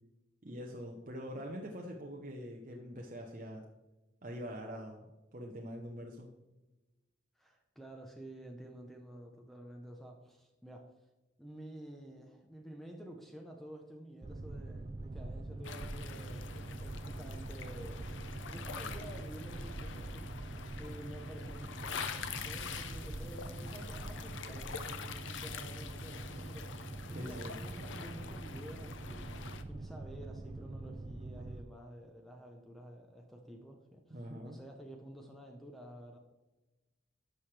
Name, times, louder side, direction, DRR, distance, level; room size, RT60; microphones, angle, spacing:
voice 1, 0.4-3.6 4.2-6.3 27.1-27.6 34.1-34.6, equal, 40° right, 0 dB, 0.8 m, -44 dB
voice 2, 7.4-10.9 11.4-16.5 16.8-20.3 20.8-36.2, right 1 dB, ahead, 2 dB, 0.7 m, -51 dB
Boat Water vehicle, 14.2-31.6, right 2 dB, 25° right, 0.3 m, -44 dB
sound 1, 15.6-29.6, left 6 dB, 75° left, 0.6 m, -46 dB
11.5 x 6.2 x 3.3 m, 1.1 s
head